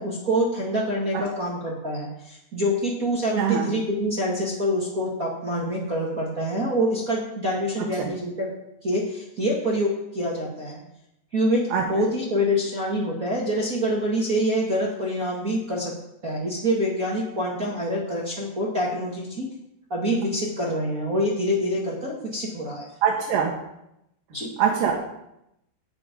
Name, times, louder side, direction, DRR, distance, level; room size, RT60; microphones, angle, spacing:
voice 1, 0.0-8.5 8.8-10.8 11.3-11.6 11.9-15.9 16.2-19.5 19.9-22.9 24.3-24.5, equal, 40° right, -3 dB, 1.2 m, -26 dB
voice 2, 3.4-3.7 8.0-8.1 11.7-11.9 23.0-23.5 24.6-24.9, right 7 dB, 90° right, -1 dB, 3.7 m, -22 dB
18.5 x 7.0 x 5.2 m, 0.83 s
omnidirectional pair, 4.7 m